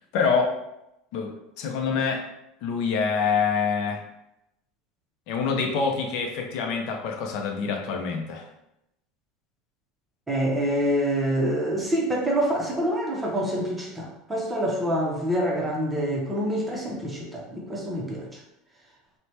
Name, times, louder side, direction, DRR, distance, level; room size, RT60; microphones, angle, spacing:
voice 1, 0.1-0.6 1.1-2.2 2.6-4.0 5.3-8.5, left 5 dB, 60° left, 2 dB, 0.5 m, -26 dB
voice 2, 10.3-18.3, equal, 10° right, -2 dB, 0.6 m, -26 dB
3.2 x 2.1 x 2.8 m, 0.85 s
supercardioid pair, 145°, 0 cm